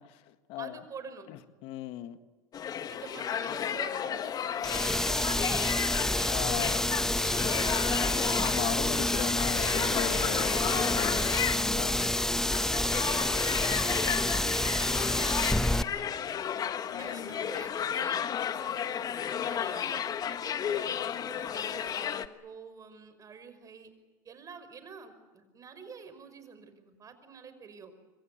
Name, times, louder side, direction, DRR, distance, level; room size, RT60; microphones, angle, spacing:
voice 1, 0.0-0.8 1.3-2.2 6.3-6.8 8.4-12.0 16.9-17.4 21.4-21.5, left 13 dB, 60° left, 10 dB, 1.8 m, -38 dB
voice 2, 0.6-1.3 2.9-8.2 12.0-12.3 12.7-16.4 17.0-20.9 21.2-23.9 24.2-27.9, right 5 dB, 30° right, 10 dB, 5.6 m, -48 dB
sound 1, 2.5-22.3, left 9 dB, 35° left, 1.4 m, -33 dB
sound 2, 4.6-15.8, left 1 dB, 5° left, 1.0 m, -28 dB
27.0 x 25.0 x 8.1 m, 1.3 s
hypercardioid pair, 95°, 11 cm